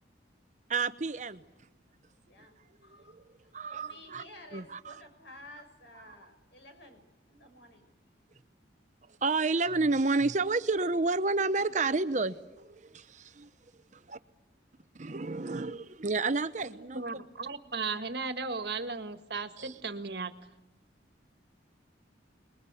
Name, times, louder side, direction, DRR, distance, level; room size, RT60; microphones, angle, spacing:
voice 1, 0.7-1.4 3.1-3.2 3.5-4.2 4.5-5.0 9.2-13.5 13.9-14.2 14.9-17.1 19.6-19.7, right 3 dB, 40° right, 13 dB, 0.8 m, -30 dB
voice 2, 2.2-3.2 3.4-7.0 7.3-7.9, left 1 dB, 65° left, 6 dB, 6.5 m, -53 dB
voice 3, 16.6-20.3, right 4 dB, 60° right, 10 dB, 1.7 m, -36 dB
27.5 x 21.5 x 8.3 m, 0.94 s
head